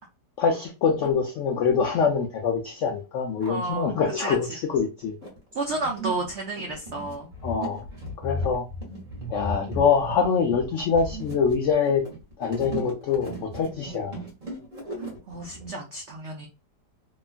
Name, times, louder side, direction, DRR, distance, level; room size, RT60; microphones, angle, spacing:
voice 1, 0.4-5.1 7.4-7.8 8.2-8.7 9.3-12.0 12.4-14.1, left 6 dB, 80° left, 0.6 m, -24 dB
sound 1, 2.8-2.9 3.2-4.2 4.8-15.7, equal, 35° right, 1.0 m, -36 dB
voice 2, 3.4-4.4 5.5-7.3 14.1-14.2 15.0-16.5, right 3 dB, 85° right, 0.6 m, -32 dB
2.9 x 2.3 x 2.4 m
omnidirectional pair, 1.8 m